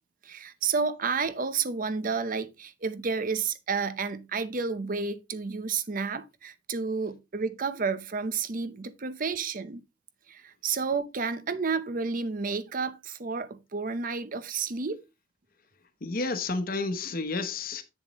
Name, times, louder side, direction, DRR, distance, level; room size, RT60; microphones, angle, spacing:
voice 1, 0.2-9.8 10.3-15.0, right 5 dB, 50° right, 0.7 m, -31 dB
voice 2, 16.0-17.8, left 3 dB, 55° left, 1.0 m, -31 dB
8.1 x 7.1 x 3.0 m
head